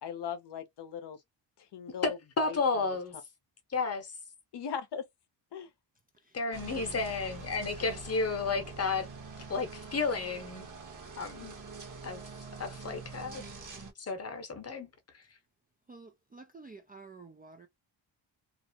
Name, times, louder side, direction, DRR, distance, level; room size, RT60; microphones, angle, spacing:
voice 1, 0.0-1.2 1.7-2.6 4.5-5.0 5.5-5.7, left 7 dB, 60° left, 0.6 m, -38 dB
voice 2, 2.0-3.2 3.7-4.1 6.3-9.1 9.5-10.7 11.2-11.5 12.0-12.2 12.6-13.4 14.1-14.9, left 4 dB, 30° left, 0.8 m, -32 dB
voice 3, 6.1-7.1 15.9-17.7, right 4 dB, 20° right, 0.3 m, -51 dB
sound 1, 6.5-13.9, right 3 dB, 40° right, 1.0 m, -45 dB
2.5 x 2.0 x 2.6 m
cardioid pair, 105°, 47 cm